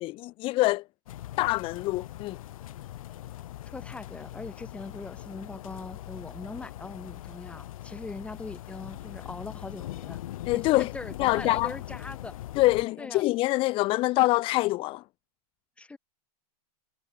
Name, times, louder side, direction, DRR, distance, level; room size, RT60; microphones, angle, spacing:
voice 1, 0.0-0.8 1.4-2.4 10.5-10.9 11.2-11.8 12.6-15.0, left 19 dB, 25° left, 1.7 m, -25 dB
sound 1, 1.1-12.9, left 14 dB, 60° left, 3.3 m, -41 dB
voice 2, 3.6-10.2 10.5-12.3 13.0-13.2 15.8-16.0, left 3 dB, 5° left, 4.8 m, -41 dB
supercardioid pair, 165°, 20 cm